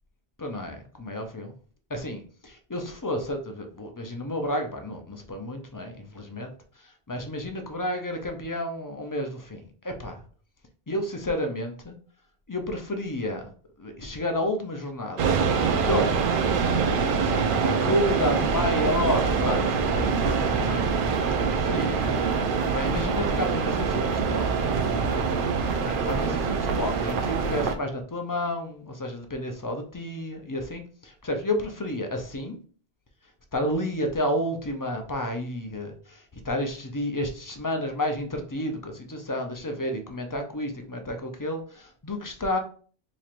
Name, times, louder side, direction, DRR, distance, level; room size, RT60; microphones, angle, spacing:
voice 1, 0.4-1.6 1.9-10.2 10.9-11.9 12.5-13.5 13.8-16.2 16.7-20.8 21.3-22.2 22.5-24.7 25.4-32.6 33.5-42.6, left 1 dB, 30° left, 5 dB, 0.4 m, -31 dB
sound 1, 15.2-27.8, right 5 dB, 65° right, 0.7 m, -25 dB
4.3 x 3.1 x 2.5 m, 0.42 s
omnidirectional pair, 1.0 m